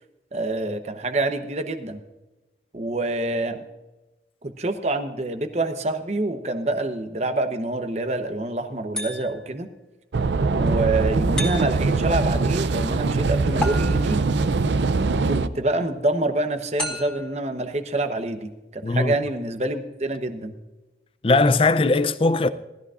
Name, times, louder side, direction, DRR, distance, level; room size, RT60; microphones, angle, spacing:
voice 1, 0.3-2.0 2.7-3.6 4.4-9.7 10.5-14.2 15.2-20.5, right 2 dB, 40° right, 0.9 m, -26 dB
sound 1, 8.9-9.6 11.4-12.0 13.6-14.3 16.8-17.4, left 1 dB, 5° left, 2.2 m, -32 dB
sound 2, 10.1-15.5, right 3 dB, 80° right, 0.5 m, -22 dB
voice 2, 18.8-19.1 21.2-22.5, left 3 dB, 30° left, 0.5 m, -19 dB
19.0 x 13.5 x 2.5 m
head